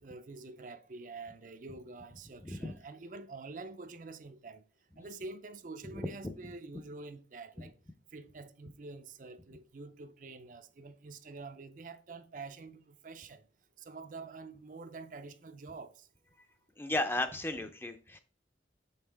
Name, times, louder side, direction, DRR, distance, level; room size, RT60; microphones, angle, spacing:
voice 1, 0.0-4.6 5.0-7.7 8.1-13.4 13.8-16.1, right 3 dB, 45° right, 0.5 m, -47 dB
voice 2, 2.4-2.8 5.9-6.3 16.8-18.2, left 2 dB, 15° left, 0.5 m, -35 dB
6.9 x 5.6 x 3.4 m
head